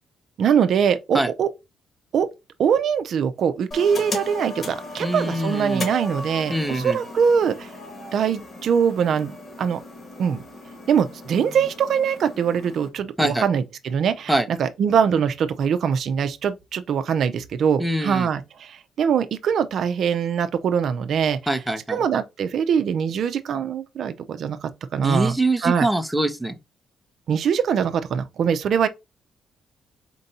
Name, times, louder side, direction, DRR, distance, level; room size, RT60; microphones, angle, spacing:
voice 1, 0.4-1.5 2.1-2.3 2.6-7.7 8.1-9.8 10.2-10.4 10.9-21.4 21.9-25.3 25.6-25.9 27.3-28.9, right 7 dB, 65° right, 0.5 m, -22 dB
sound 1, 3.7-12.9, left 2 dB, 40° left, 2.0 m, -36 dB
voice 2, 5.0-5.9 6.5-7.0 11.5-11.6 13.2-13.4 14.3-14.5 17.8-18.3 21.5-22.0 25.0-26.6, right 1 dB, 5° right, 0.7 m, -24 dB
4.4 x 2.6 x 4.1 m
cardioid pair, 90°, 0 cm